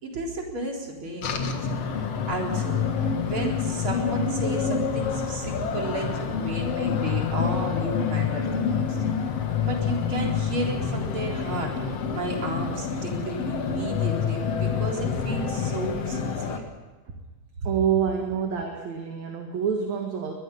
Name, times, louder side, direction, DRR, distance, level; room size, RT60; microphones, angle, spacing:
voice 1, 0.0-1.6 2.0-9.0 9.6-11.7 12.1-16.7 17.6-17.7, right 2 dB, 40° right, 0 dB, 4.4 m, -33 dB
sound 1, 1.2-16.6, left 6 dB, 55° left, 2.4 m, -27 dB
voice 2, 17.6-20.3, right 7 dB, 60° right, 2 dB, 3.0 m, -27 dB
22.5 x 21.5 x 5.5 m, 1.3 s
omnidirectional pair, 3.8 m